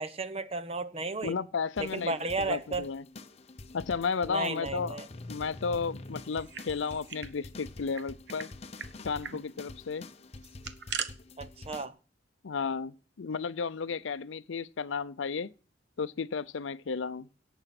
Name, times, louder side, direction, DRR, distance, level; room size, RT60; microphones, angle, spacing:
voice 1, 0.0-1.3 1.8-2.9 4.2-5.1 11.4-11.9, right 3 dB, 30° right, 0.8 m, -33 dB
voice 2, 1.2-3.0 3.7-5.0 5.3-8.5 9.0-10.1 12.4-15.5 16.0-17.3, left 5 dB, 80° left, 0.5 m, -33 dB
sound 1, 1.8-11.9, left 2 dB, 35° left, 0.8 m, -46 dB
sound 2, 6.2-7.3 7.6-7.7 7.9-8.5 8.8-8.9 9.2-9.4 10.4-11.1, right 7 dB, 65° right, 1.0 m, -39 dB
17.5 x 6.9 x 5.9 m
head